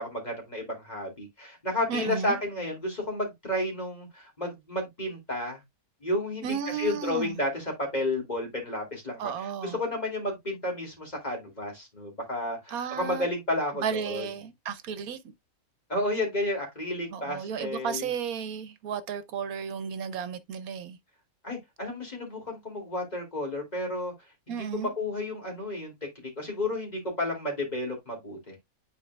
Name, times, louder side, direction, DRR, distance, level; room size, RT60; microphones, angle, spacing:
voice 1, 0.0-5.6 6.0-6.5 6.8-7.6 7.9-9.3 9.6-14.3 15.9-18.1 21.4-24.1 24.5-25.9 26.2-28.6, left 1 dB, 30° left, 2.7 m, -32 dB
voice 2, 1.9-2.4 6.4-7.4 9.2-9.8 12.7-13.3 13.7-15.3 17.1-21.0 24.5-24.9, right 7 dB, 80° right, 1.2 m, -33 dB
10.0 x 4.5 x 2.2 m
omnidirectional pair, 1.5 m